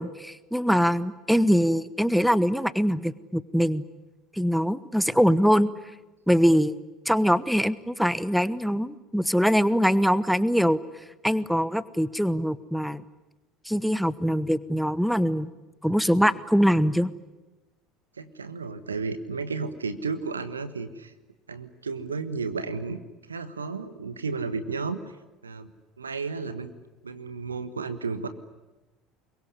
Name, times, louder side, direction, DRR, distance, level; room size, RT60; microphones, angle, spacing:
voice 1, 0.0-3.8 4.4-5.7 6.3-6.8 7.1-10.8 11.2-13.0 13.7-15.5 15.8-17.1, equal, ahead, 18 dB, 1.0 m, -23 dB
voice 2, 18.1-21.1 21.5-23.0 23.3-25.0 25.4-25.7 26.0-26.7 27.0-28.3, right 4 dB, 80° right, 11 dB, 1.4 m, -33 dB
25.0 x 22.5 x 9.8 m, 1.1 s
figure-of-eight pair, 65°, 0 cm